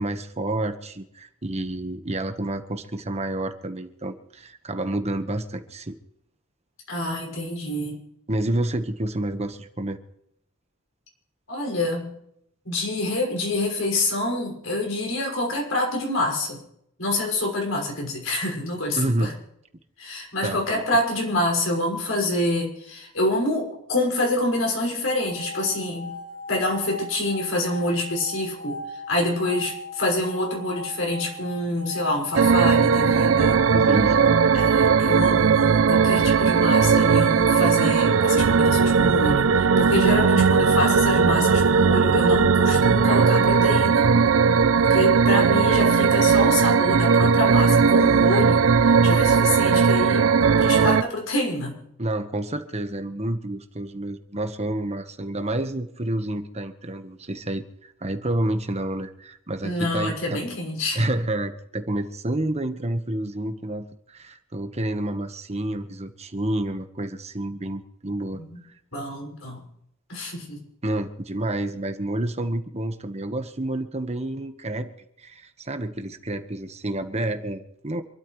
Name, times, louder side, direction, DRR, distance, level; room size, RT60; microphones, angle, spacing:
voice 1, 0.0-5.9 8.3-10.0 19.0-19.3 20.4-20.8 33.7-34.4 52.0-60.4 60.9-68.4 70.8-74.9 75.2-78.0, right 1 dB, 30° right, 8 dB, 1.3 m, -29 dB
voice 2, 6.9-8.0 11.5-12.1 12.6-16.6 17.0-19.3 20.0-26.1 26.5-28.8 29.1-33.6 34.5-44.1 44.8-48.6 49.0-50.3 50.6-51.8 59.6-61.1 68.3-68.6 68.9-69.6 70.1-70.6, left 1 dB, 75° left, 0 dB, 6.1 m, -26 dB
sound 1, 25.1-35.2, left 2 dB, 90° left, 5.0 m, -39 dB
sound 2, 32.3-51.0, right 5 dB, 70° right, 0.5 m, -18 dB
27.0 x 13.0 x 3.2 m, 0.75 s
head